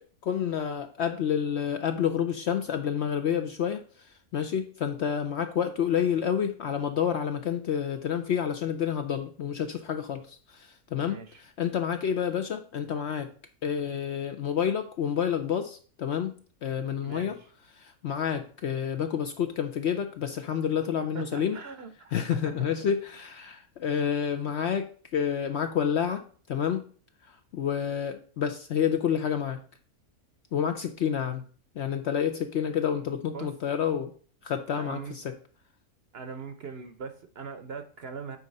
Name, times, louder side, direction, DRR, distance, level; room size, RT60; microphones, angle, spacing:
voice 1, 0.2-3.8 4.3-13.3 13.6-17.4 17.8-21.6 22.1-26.9 27.3-29.6 30.5-31.4 31.8-34.1 34.4-35.3, left 8 dB, 60° left, 0.7 m, -29 dB
voice 2, 11.0-11.4 17.0-17.5 21.1-22.5 33.0-33.5 34.7-35.1 36.1-38.4, right 5 dB, 50° right, 0.8 m, -41 dB
8.8 x 3.9 x 5.3 m
omnidirectional pair, 1.5 m